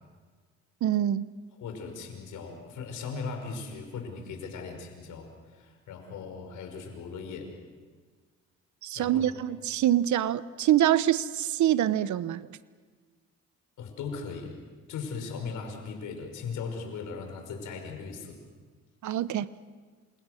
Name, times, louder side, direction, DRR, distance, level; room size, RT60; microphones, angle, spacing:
voice 1, 0.8-1.3 8.8-12.5 19.0-19.5, right 11 dB, 70° right, 15 dB, 1.0 m, -25 dB
voice 2, 1.6-7.5 8.9-9.3 13.8-14.6 14.9-18.4, left 5 dB, 80° left, 4 dB, 5.7 m, -38 dB
28.5 x 27.0 x 6.6 m, 1.5 s
cardioid pair, 90°, 30 cm